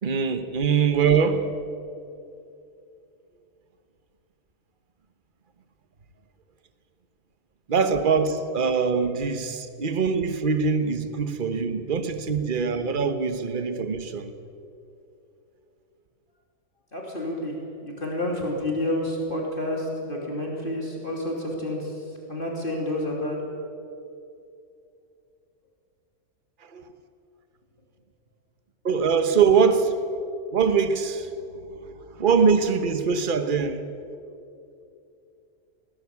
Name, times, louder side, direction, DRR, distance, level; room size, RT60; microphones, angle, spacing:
voice 1, 0.0-1.5 7.7-14.3 26.6-26.9 28.8-30.0 30.5-31.3 31.7-31.8 32.1-33.9, right 5 dB, 40° right, 1.2 m, -23 dB
voice 2, 16.9-17.6 17.8-23.4, left 1 dB, 35° left, 3.2 m, -29 dB
19.5 x 17.0 x 8.4 m
omnidirectional pair, 1.5 m